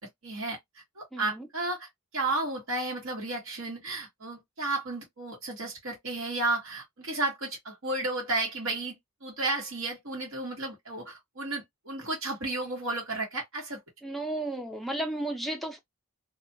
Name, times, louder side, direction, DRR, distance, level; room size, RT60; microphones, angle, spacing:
voice 1, 0.2-0.6 1.0-1.9 2.1-13.8, right 2 dB, 70° right, 1.3 m, -33 dB
voice 2, 1.1-1.5 14.0-15.8, right 1 dB, ahead, 0.6 m, -33 dB
2.5 x 2.3 x 2.7 m
head